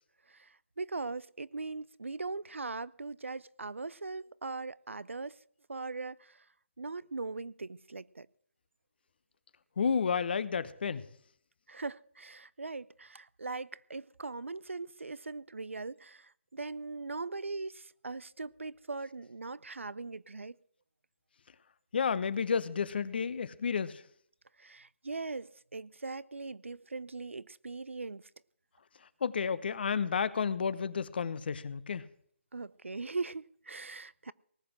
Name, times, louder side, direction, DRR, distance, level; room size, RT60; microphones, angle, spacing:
voice 1, 0.8-5.4 5.7-6.2 6.8-8.3 11.7-16.2 16.5-20.5 24.6-28.2 32.5-34.3, right 3 dB, 85° right, 0.6 m, -40 dB
voice 2, 9.8-11.0 21.9-24.0 29.2-32.1, left 6 dB, 55° left, 1.1 m, -31 dB
19.0 x 7.9 x 7.5 m
figure-of-eight pair, 150°, 7 cm